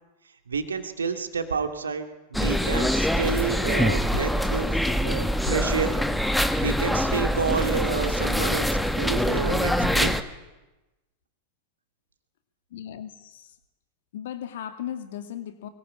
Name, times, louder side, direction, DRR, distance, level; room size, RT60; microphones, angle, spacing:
voice 1, 0.5-6.0 6.6-10.2, right 5 dB, 70° right, 7 dB, 2.8 m, -29 dB
sound 1, 2.3-10.2, equal, ahead, 1.7 m, -24 dB
voice 2, 12.7-13.6 14.1-15.7, left 10 dB, 55° left, 9 dB, 2.6 m, -36 dB
24.0 x 23.0 x 9.9 m, 1.1 s
figure-of-eight pair, 90°, 0 cm